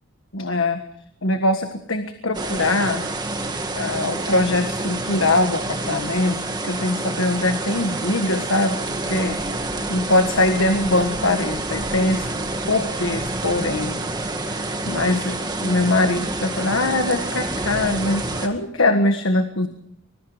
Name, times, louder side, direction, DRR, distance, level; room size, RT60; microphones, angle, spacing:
voice 1, 0.3-0.8 1.2-3.1 3.8-8.8 9.1-9.4 9.7-12.3 12.7-14.0 14.4-14.6 14.8-19.7, left 2 dB, 65° left, 7 dB, 1.6 m, -22 dB
sound 1, 2.3-18.5, right 2 dB, 20° right, 1.9 m, -28 dB
25.5 x 21.5 x 5.1 m, 0.74 s
head